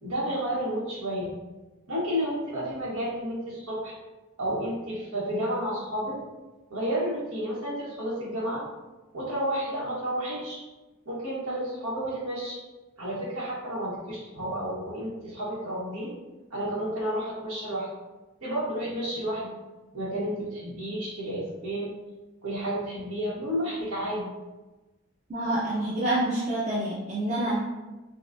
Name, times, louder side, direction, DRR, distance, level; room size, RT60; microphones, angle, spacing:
voice 1, 0.0-1.3 1.9-3.9 4.4-6.2 6.7-8.6 9.1-10.6 11.0-12.6 13.0-16.1 16.5-17.9 18.4-19.5 19.9-21.9 22.4-24.3, equal, 90° right, -7 dB, 1.4 m, -31 dB
voice 2, 25.3-27.6, right 1 dB, 35° right, -8 dB, 0.6 m, -27 dB
5.7 x 2.4 x 2.6 m, 1.1 s
head